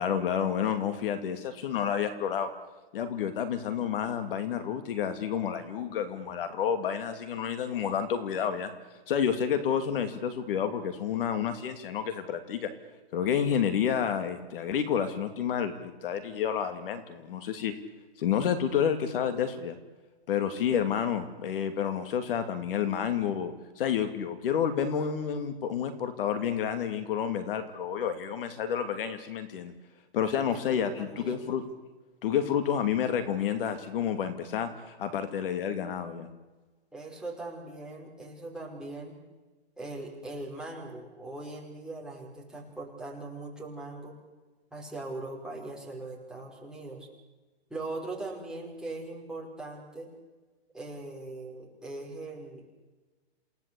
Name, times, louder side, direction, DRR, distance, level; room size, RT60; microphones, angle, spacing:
voice 1, 0.0-2.5 2.9-8.7 9.1-12.7 13.1-17.7 18.2-19.8 20.3-29.7 30.1-31.6 32.2-36.3, left 8 dB, 55° left, 9 dB, 2.7 m, -29 dB
voice 2, 31.0-31.5 36.9-39.2 39.8-44.1 44.7-47.1 47.7-50.1 50.7-52.7, right 2 dB, ahead, -2 dB, 5.2 m, -40 dB
28.5 x 17.5 x 8.5 m, 1.2 s
hypercardioid pair, 140°, 33 cm